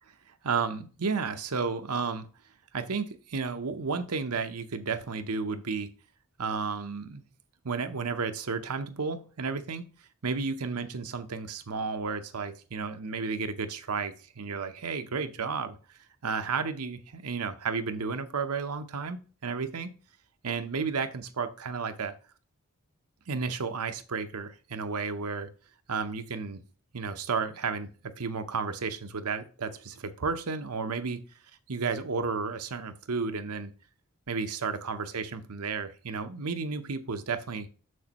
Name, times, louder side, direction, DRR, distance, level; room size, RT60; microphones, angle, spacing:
voice 1, 0.4-2.3 2.7-5.9 6.4-7.2 7.6-9.8 10.2-15.8 16.2-19.9 20.4-22.1 23.3-25.5 25.9-26.6 26.9-27.9 28.2-31.2 31.7-33.7 34.3-37.7, right 5 dB, 85° right, 0.8 m, -32 dB
6.9 x 6.4 x 3.0 m
head